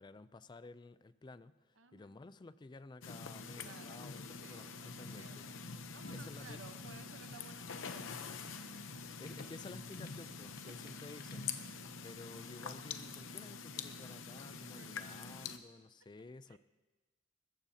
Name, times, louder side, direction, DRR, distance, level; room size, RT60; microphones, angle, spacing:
voice 1, 0.0-5.5 5.9-6.6 8.9-11.5 12.0-16.6, left 3 dB, 25° left, 15 dB, 0.4 m, -53 dB
voice 2, 1.8-2.2 3.5-4.1 4.4-5.3 5.9-8.6 10.5-10.8 14.8-15.0 16.2-16.6, right 4 dB, 80° right, 8 dB, 0.9 m, -58 dB
sound 1, 3.0-15.6, left 5 dB, 90° left, 0.8 m, -46 dB
sound 2, 9.2-12.1, left 5 dB, 50° left, 1.5 m, -65 dB
20.5 x 14.5 x 2.8 m, 1.2 s
head